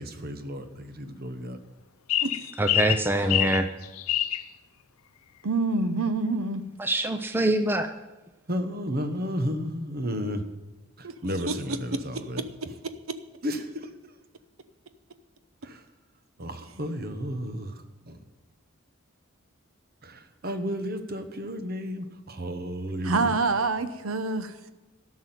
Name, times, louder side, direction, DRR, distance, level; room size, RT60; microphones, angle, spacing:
voice 1, 0.0-1.6 8.5-10.4 11.0-12.7 13.4-13.9 15.6-15.8 16.4-18.2 20.0-23.4, equal, 45° right, 7 dB, 1.2 m, -33 dB
sound 1, 2.1-4.4, left 12 dB, 90° left, 0.6 m, -26 dB
voice 2, 2.6-3.7 6.8-7.9, right 1 dB, 10° right, 7 dB, 0.5 m, -24 dB
voice 3, 5.4-6.6 11.0-11.1 11.5-11.6 23.0-24.5, right 3 dB, 75° right, 11 dB, 0.8 m, -26 dB
13.0 x 6.3 x 9.1 m, 1.1 s
head